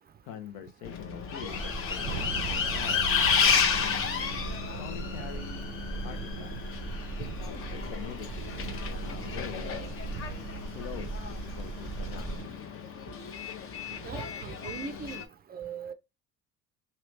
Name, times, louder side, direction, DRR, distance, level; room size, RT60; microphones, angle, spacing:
voice 1, 0.2-1.6 2.0-3.1 3.7-4.1 4.7-5.7 6.0-6.5 7.5-9.8 10.7-12.3, left 9 dB, 85° left, 0.9 m, -44 dB
Bus, 0.8-15.3, left 6 dB, 40° left, 0.7 m, -32 dB
sound 1, 1.5-12.4, right 1 dB, 5° left, 1.1 m, -40 dB
sound 2, 2.0-12.5, right 10 dB, 85° right, 0.5 m, -42 dB
voice 2, 14.0-15.2 15.5-15.9, right 7 dB, 30° right, 0.4 m, -39 dB
3.1 x 2.8 x 3.1 m
supercardioid pair, 105°, 35 cm